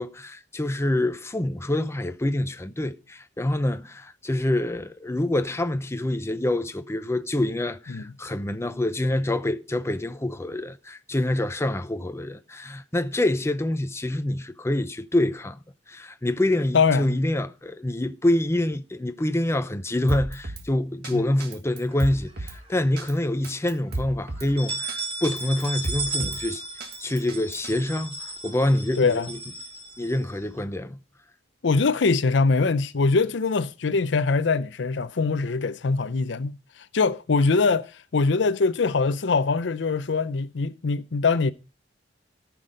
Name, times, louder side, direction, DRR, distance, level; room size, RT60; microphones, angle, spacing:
voice 1, 0.0-15.6 15.9-26.6 27.0-29.4 30.0-31.0, left 1 dB, 15° left, 0.6 m, -26 dB
voice 2, 16.7-17.2 21.1-21.3 29.0-29.3 31.6-36.5 36.9-41.5, left 4 dB, 70° left, 0.6 m, -23 dB
Drum kit, 20.1-20.7 21.0-21.1 21.4-22.6 23.0-23.1 23.4-24.5 24.9-25.0 25.2-26.4 26.8-27.7, right 2 dB, 60° right, 1.7 m, -33 dB
sound 1, 21.9-22.8 23.2-23.3 23.7-23.8 24.4-30.6, right 3 dB, 30° right, 2.0 m, -35 dB
13.5 x 6.0 x 5.1 m
head